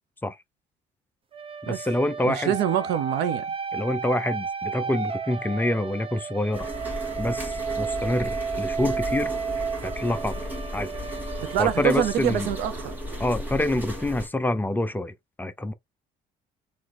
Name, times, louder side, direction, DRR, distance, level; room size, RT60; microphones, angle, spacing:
sound 1, 1.3-13.1, right 6 dB, 35° right, 0.9 m, -33 dB
voice 1, 1.6-2.6 3.7-6.7 7.2-9.3 9.8-10.4 10.7-10.9 11.6-12.5 13.2-15.7, left 1 dB, 10° left, 0.6 m, -27 dB
voice 2, 2.2-3.5 11.4-13.0, right 10 dB, 90° right, 0.8 m, -25 dB
sound 2, 6.5-14.3, equal, 10° right, 2.0 m, -35 dB
3.8 x 3.0 x 3.4 m
cardioid pair, 110°, 17 cm